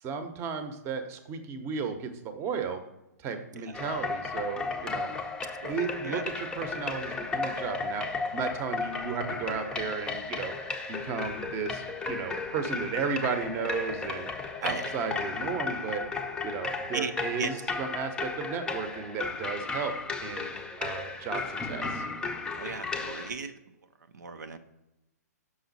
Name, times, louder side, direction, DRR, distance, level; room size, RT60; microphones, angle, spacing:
voice 1, 0.0-2.8 3.2-5.2 5.7-10.5 10.9-14.3 14.6-16.0 16.4-19.9 20.2-22.0, right 6 dB, 25° right, 8 dB, 0.8 m, -34 dB
sound 1, 3.7-23.3, left 4 dB, 10° left, 0.5 m, -34 dB
voice 2, 22.6-23.5 24.1-24.6, right 5 dB, 85° right, 8 dB, 0.6 m, -35 dB
6.1 x 5.5 x 4.0 m, 0.93 s
hypercardioid pair, 130°, 9 cm